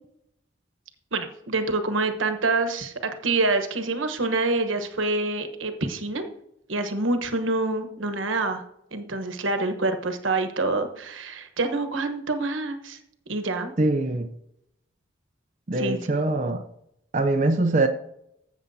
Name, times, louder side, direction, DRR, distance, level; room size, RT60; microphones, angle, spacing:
voice 1, 1.1-6.3 6.7-8.6 8.9-13.0 13.3-13.7 15.8-16.0, right 3 dB, 90° right, 1.2 m, -26 dB
voice 2, 13.8-14.3 15.7-16.6 17.1-17.9, right 2 dB, 40° right, 0.5 m, -23 dB
14.5 x 7.1 x 2.8 m
head